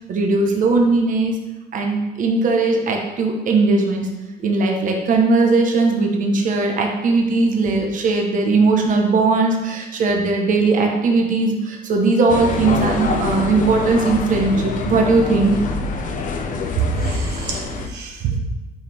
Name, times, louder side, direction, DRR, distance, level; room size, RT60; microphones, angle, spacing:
voice 1, 0.1-1.3 1.7-4.1 4.4-15.6, right 3 dB, 50° right, 2 dB, 1.2 m, -18 dB
sound 1, 12.3-17.9, left 4 dB, 50° left, 0.8 m, -25 dB
voice 2, 16.8-18.4, right 5 dB, 80° right, 1 dB, 1.2 m, -25 dB
9.1 x 5.2 x 3.5 m, 1.1 s
cardioid pair, 110°, 17 cm